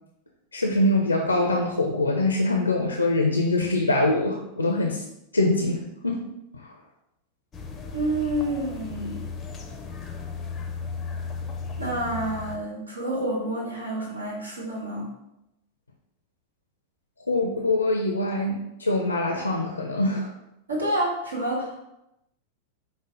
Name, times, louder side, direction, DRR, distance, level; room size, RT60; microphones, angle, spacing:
voice 1, 0.5-5.0 5.3-6.3 6.5-6.7 17.3-20.3, left 2 dB, 80° left, 2 dB, 0.4 m, -24 dB
sound 1, 7.5-12.6, left 5 dB, 20° left, 0.5 m, -35 dB
voice 2, 7.9-9.2 11.8-15.1 20.7-21.8, right 1 dB, 80° right, -3 dB, 1.1 m, -28 dB
5.0 x 2.0 x 3.7 m, 0.86 s
figure-of-eight pair, 90°, 0 cm